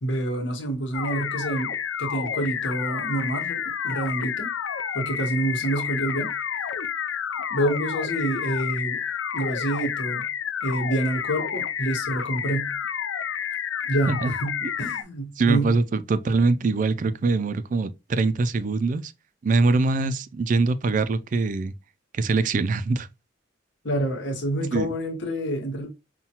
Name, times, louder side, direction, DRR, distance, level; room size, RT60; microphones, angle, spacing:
voice 1, 0.0-1.7 2.0-4.5 4.9-6.3 7.5-9.0 9.3-10.3 10.6-12.7 13.9-14.5 14.8-15.7 23.8-25.9, right 1 dB, 65° left, 1.2 m, -27 dB
sound 1, 0.9-15.0, left 8 dB, 85° left, 0.4 m, -30 dB
voice 2, 15.4-19.1 19.4-21.7 22.1-23.1 24.7-24.9, right 3 dB, 40° right, 0.3 m, -23 dB
5.5 x 2.2 x 2.9 m
head